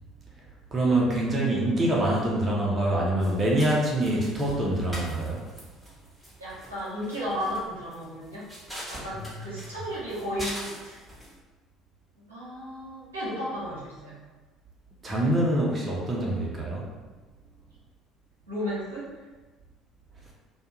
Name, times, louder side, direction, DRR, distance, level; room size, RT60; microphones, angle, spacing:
voice 1, 0.7-5.4 9.1-9.5 15.0-16.9, right 1 dB, 30° right, -3 dB, 0.7 m, -25 dB
sound 1, 3.2-11.4, equal, ahead, 1.0 m, -42 dB
voice 2, 6.4-8.5 8.9-11.0 12.3-14.2 18.5-19.2, equal, 85° right, -9 dB, 0.7 m, -34 dB
2.3 x 2.2 x 2.9 m, 1.2 s
figure-of-eight pair, 60°, 0 cm